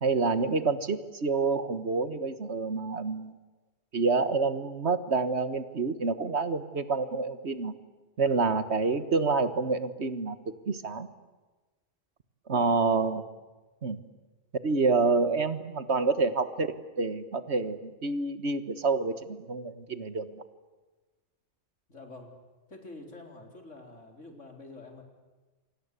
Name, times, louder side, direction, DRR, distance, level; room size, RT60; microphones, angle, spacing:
voice 1, 0.0-3.3 3.9-7.7 8.2-11.1 12.5-13.2 13.8-14.0 14.6-20.4, right 4 dB, 60° right, 12 dB, 1.8 m, -28 dB
voice 2, 21.9-22.3 22.7-25.0, left 2 dB, 75° left, 3 dB, 4.5 m, -47 dB
28.5 x 25.0 x 8.3 m, 1.2 s
omnidirectional pair, 1.3 m